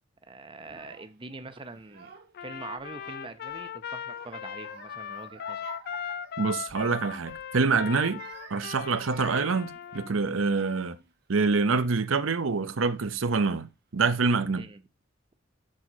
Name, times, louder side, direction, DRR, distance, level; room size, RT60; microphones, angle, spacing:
voice 1, 0.3-2.1 2.4-5.6 14.5-14.8, right 3 dB, 25° right, 0.7 m, -43 dB
Child speech kid speaking / Crying sobbing, 0.6-1.2 1.8-2.5 2.8-3.6 4.1-6.9 7.2-7.5 8.0-11.1 11.7-12.1 12.9-13.0 13.2-14.0, right 4 dB, 55° right, 1.5 m, -50 dB
Trumpet, 2.3-10.1, left 9 dB, 50° left, 0.4 m, -38 dB
voice 2, 6.4-8.2 8.5-11.0 11.3-14.7, right 4 dB, 85° right, 0.8 m, -26 dB
7.6 x 4.2 x 6.1 m
head